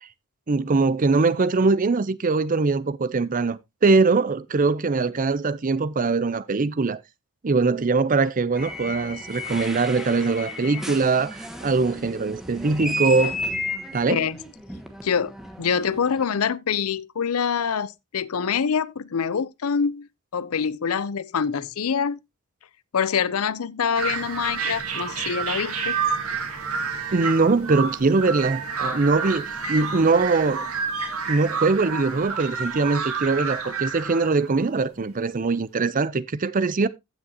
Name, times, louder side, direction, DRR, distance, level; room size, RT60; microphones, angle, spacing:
voice 1, 0.5-7.0 7.4-13.4 13.9-14.3 27.1-30.6 31.3-36.9, right 3 dB, 40° right, 0.5 m, -22 dB
sound 1, 8.5-16.3, equal, ahead, 1.2 m, -33 dB
voice 2, 15.0-15.3 15.6-22.2 22.9-25.9, left 6 dB, 85° left, 0.6 m, -25 dB
sound 2, 23.9-34.7, right 5 dB, 85° right, 2.4 m, -29 dB
15.0 x 6.2 x 2.8 m
head